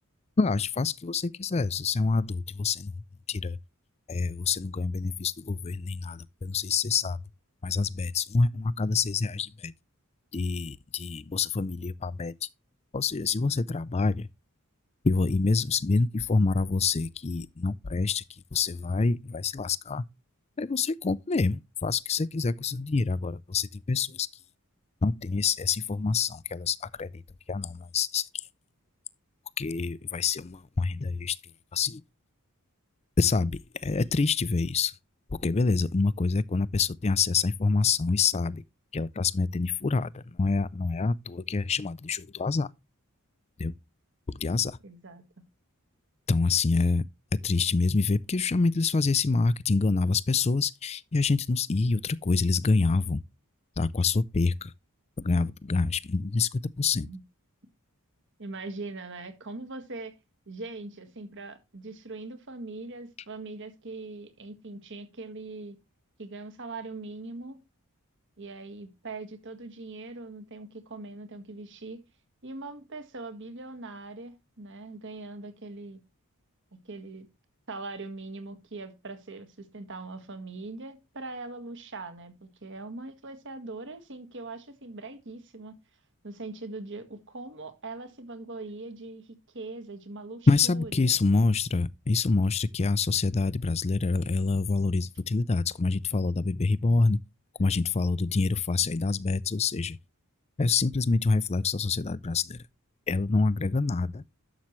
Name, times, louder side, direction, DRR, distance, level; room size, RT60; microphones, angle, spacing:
voice 1, 0.4-2.9 3.3-3.6 4.1-7.2 7.6-9.7 10.3-12.3 12.9-14.3 15.0-18.2 18.5-20.0 20.6-24.3 25.0-27.1 27.5-28.3 29.6-31.4 31.7-32.0 33.2-34.9 35.4-38.6 38.9-42.7 43.6-43.7 44.3-44.8 46.3-47.0 47.4-53.2 53.8-54.7 55.2-57.1 90.5-97.2 97.6-100.0 100.6-102.6 103.1-104.2, left 4 dB, 30° left, 0.4 m, -26 dB
voice 2, 44.8-45.2 57.0-57.2 58.4-60.1 60.5-65.8 66.2-67.6 68.4-72.0 72.4-76.0 76.7-77.3 77.7-85.7 86.2-91.4, right 3 dB, 55° right, 1.7 m, -41 dB
11.5 x 7.2 x 3.1 m
head